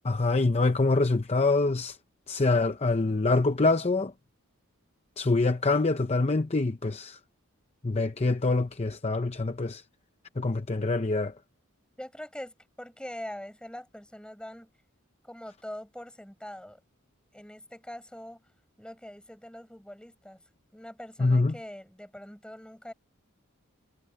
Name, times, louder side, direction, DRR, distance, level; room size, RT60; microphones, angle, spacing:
voice 1, 0.0-2.0 2.3-4.1 5.2-7.2 7.8-9.8 10.4-11.3 21.2-21.5, left 3 dB, 30° left, 0.7 m, -25 dB
voice 2, 12.0-14.7 15.2-16.8 17.3-18.4 18.8-20.4 20.7-22.9, left 1 dB, 5° left, 6.8 m, -43 dB
head